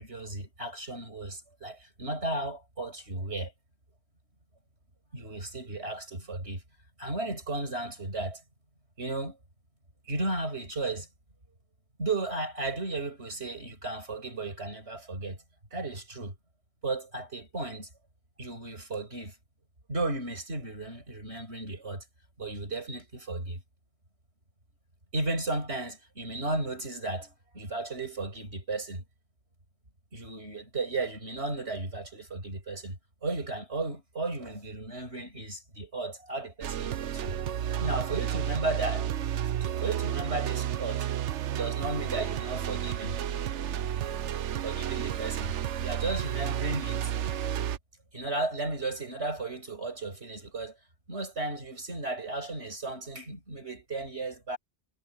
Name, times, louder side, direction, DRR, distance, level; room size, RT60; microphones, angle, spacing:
voice 1, 0.0-3.5 5.1-6.6 7.0-8.4 9.0-9.4 10.1-11.1 12.0-15.4 15.7-16.4 16.8-17.9 18.4-19.3 19.9-22.0 22.4-23.6 25.1-29.0 30.1-33.0 33.2-37.4 37.8-39.1 39.6-41.1 41.5-43.2 44.6-45.5 45.8-47.1 48.1-50.8 51.1-54.6, right 2 dB, 70° right, 6.6 m, -34 dB
sound 1, 36.6-47.8, right 10 dB, 85° right, 1.1 m, -31 dB
omnidirectional pair, 1.2 m